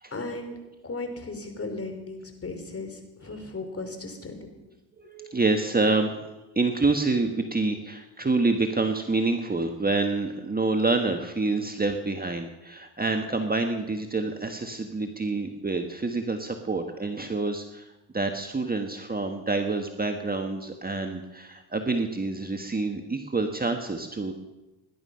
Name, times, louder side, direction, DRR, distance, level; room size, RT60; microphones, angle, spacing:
voice 1, 0.1-0.6 0.8-4.5, left 3 dB, 30° left, 6 dB, 3.8 m, -36 dB
voice 2, 5.0-6.3 6.5-17.9 18.1-24.3, right 3 dB, 20° right, 5 dB, 1.5 m, -27 dB
18.5 x 11.5 x 5.7 m, 1.0 s
supercardioid pair, 80°, 47 cm